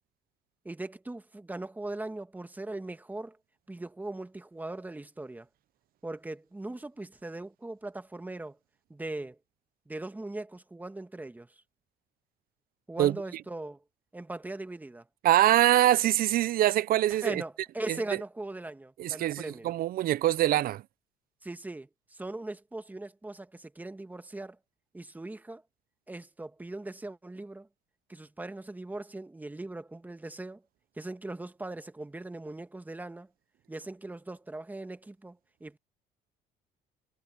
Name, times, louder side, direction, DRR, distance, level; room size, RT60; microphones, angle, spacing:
voice 1, 0.6-3.4 3.7-5.5 6.0-8.6 8.9-9.4 9.9-11.6 12.9-13.8 14.1-15.0 17.1-19.7 21.4-24.6 24.9-25.6 26.1-27.7 28.1-30.6 31.0-33.3 33.7-35.8, right 2 dB, 10° right, 1.3 m, -40 dB
voice 2, 15.2-17.4 17.9-18.0 19.0-20.8, right 13 dB, 60° right, 0.6 m, -24 dB
cardioid pair, 110°, 17 cm